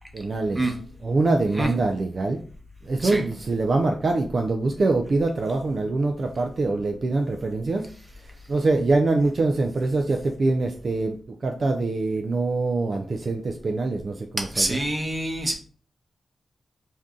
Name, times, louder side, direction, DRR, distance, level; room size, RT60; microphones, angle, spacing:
voice 1, 0.1-0.7 1.0-2.4 2.9-7.9 8.5-11.2 11.4-14.8, right 3 dB, 50° right, 3 dB, 0.3 m, -24 dB
voice 2, 14.4-15.5, right 1 dB, 20° right, 3 dB, 0.8 m, -26 dB
2.6 x 2.3 x 3.6 m, 0.43 s
cardioid pair, 80°, 0 cm